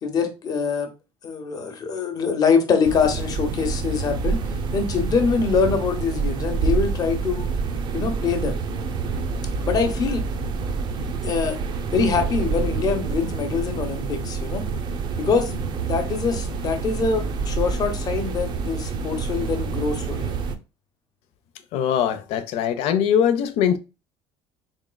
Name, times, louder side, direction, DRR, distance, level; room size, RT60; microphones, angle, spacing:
voice 1, 0.0-0.9 1.2-4.4 4.7-7.5 7.9-8.6 9.6-10.3 11.0-11.6 11.9-14.6 15.2-15.5 15.8-20.3, left 5 dB, 35° left, 0.9 m, -24 dB
sound 1, 2.8-20.6, right 5 dB, 45° right, 0.6 m, -27 dB
voice 2, 21.7-23.8, left 9 dB, 70° left, 0.6 m, -21 dB
4.0 x 3.6 x 2.2 m
cardioid pair, 150°, 11 cm